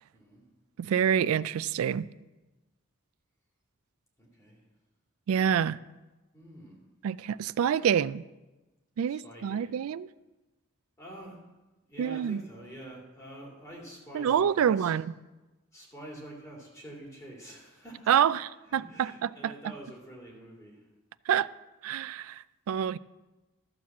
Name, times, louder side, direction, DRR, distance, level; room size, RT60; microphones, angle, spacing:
voice 1, 0.1-0.4 4.2-4.6 6.3-6.8 9.1-9.8 11.0-11.4 11.9-14.9 15.7-18.1 18.6-20.9, right 1 dB, 15° left, -3 dB, 2.8 m, -47 dB
voice 2, 0.8-2.1 5.3-5.8 7.0-8.2 9.0-10.1 12.0-12.4 14.1-15.0 18.1-18.4 18.7-19.5 21.3-21.5 21.8-23.0, right 8 dB, 80° right, 19 dB, 0.3 m, -27 dB
13.0 x 4.7 x 7.3 m, 1.1 s
head